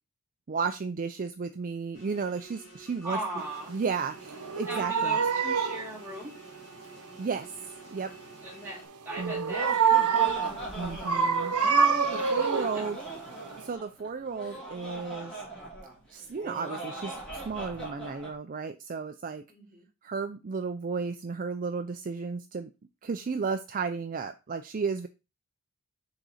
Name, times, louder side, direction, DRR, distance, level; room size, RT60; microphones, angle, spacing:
voice 1, 0.5-3.2 3.7-5.2 7.2-7.5 7.9-8.1 9.2-9.5 10.8-13.0 13.6-15.4 16.1-19.4 20.0-22.7 23.0-25.1, right 5 dB, 35° right, 8 dB, 0.4 m, -33 dB
sound 1, 1.9-8.9, right 2 dB, 30° left, 2.8 m, -51 dB
voice 2, 3.0-3.7 4.6-6.3 8.4-10.6 12.2-12.9 19.5-19.9, right 1 dB, 10° right, -5 dB, 3.2 m, -39 dB
sound 2, 4.3-5.9 9.1-10.6 11.0-12.9 13.4-13.5, right 6 dB, 85° right, 0.9 m, -26 dB
Laughter, 9.2-18.3, right 2 dB, 5° left, 3.5 m, -40 dB
6.3 x 4.0 x 4.9 m, 0.28 s
head